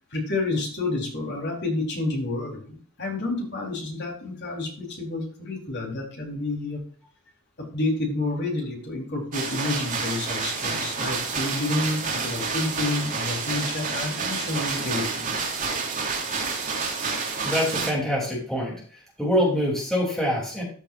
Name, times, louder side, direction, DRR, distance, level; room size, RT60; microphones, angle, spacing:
voice 1, 0.0-6.8 7.7-15.4, left 2 dB, 50° left, -1 dB, 4.0 m, -29 dB
sound 1, 9.3-17.9, right 4 dB, 40° right, 2.9 m, -29 dB
voice 2, 17.4-18.7 19.2-20.6, equal, ahead, -3 dB, 3.3 m, -24 dB
14.0 x 6.7 x 2.6 m, 0.43 s
head